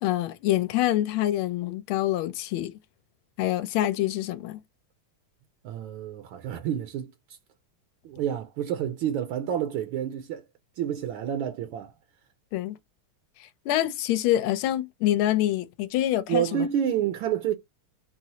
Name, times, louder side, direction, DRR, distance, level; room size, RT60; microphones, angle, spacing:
voice 1, 0.0-2.8 3.4-4.6 12.5-12.8 13.4-16.7, left 13 dB, 80° left, 1.4 m, -26 dB
voice 2, 5.6-7.4 8.0-10.4 10.8-11.9 16.3-17.5, right 10 dB, 80° right, 1.3 m, -29 dB
4.1 x 2.0 x 2.7 m
omnidirectional pair, 2.4 m